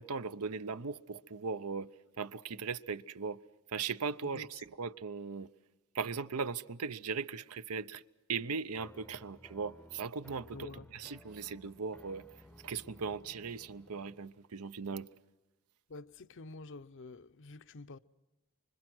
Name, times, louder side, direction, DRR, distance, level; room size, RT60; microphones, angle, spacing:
voice 1, 0.0-1.9 2.2-3.4 3.7-5.5 5.9-8.0 8.3-12.2 12.6-15.1, right 5 dB, 80° right, 0.7 m, -38 dB
voice 2, 4.2-4.6 10.5-10.9 15.9-18.0, left 3 dB, 55° left, 0.7 m, -48 dB
sound 1, 8.8-14.3, left 1 dB, 5° left, 0.7 m, -57 dB
25.5 x 25.5 x 6.2 m
head